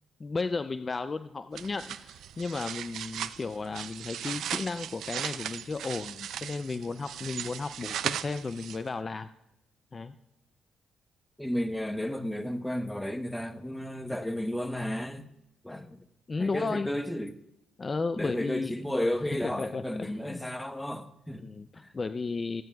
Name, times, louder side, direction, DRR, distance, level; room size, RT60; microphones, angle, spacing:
voice 1, 0.2-9.3 9.9-10.1 16.3-16.9 17.8-18.7 19.4-20.4 21.4-22.6, left 4 dB, 30° left, 0.4 m, -34 dB
sound 1, 1.5-9.0, right 10 dB, 75° right, 0.4 m, -37 dB
voice 2, 11.4-15.2 15.6-16.0 16.4-17.3 18.2-21.4 21.8-21.9, left 1 dB, 5° left, 0.9 m, -33 dB
21.0 x 9.4 x 2.3 m
cardioid pair, 90°, 0 cm